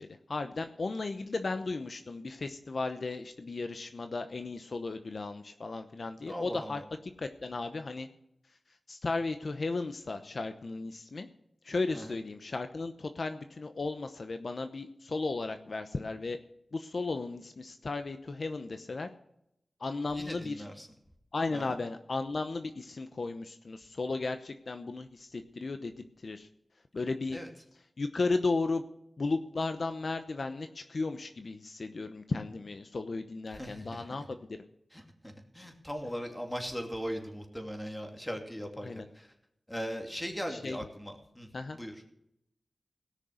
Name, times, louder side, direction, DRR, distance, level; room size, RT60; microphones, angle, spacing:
voice 1, 0.0-6.8 7.2-8.1 8.9-11.3 11.6-16.4 16.7-19.1 19.8-20.7 21.3-26.5 26.9-27.4 28.0-28.8 29.2-34.6 38.8-39.0 40.5-40.8 41.5-41.8, left 3 dB, 60° left, 8 dB, 0.8 m, -35 dB
voice 2, 6.3-6.8 11.9-12.1 20.1-20.9 21.5-21.8 27.3-27.5 33.5-34.2 34.9-39.3 39.7-41.5 41.7-41.9, equal, 10° left, 3 dB, 2.6 m, -39 dB
18.0 x 6.5 x 6.5 m, 0.79 s
wide cardioid pair, 60°, 0 cm